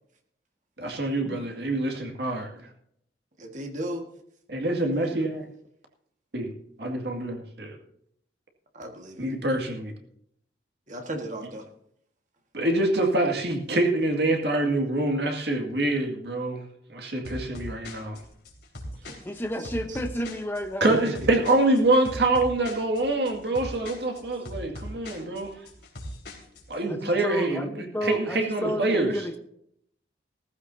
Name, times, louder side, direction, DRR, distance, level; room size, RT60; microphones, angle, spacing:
voice 1, 0.8-2.5 4.5-5.4 6.3-6.5 6.8-7.8 9.2-9.9 12.5-16.6 16.9-18.2 20.8-25.5 26.7-29.2, right 2 dB, 65° right, 2.2 m, -25 dB
voice 2, 3.4-4.1 5.1-5.3 8.7-9.3 10.9-11.6 19.0-19.3 19.9-20.0 20.9-21.0, right 1 dB, 45° right, 1.6 m, -36 dB
sound 1, 17.2-26.8, equal, 65° left, 3.2 m, -40 dB
voice 3, 19.2-21.0 26.9-27.7 27.9-29.4, equal, 10° left, 0.9 m, -31 dB
16.0 x 14.5 x 2.8 m
head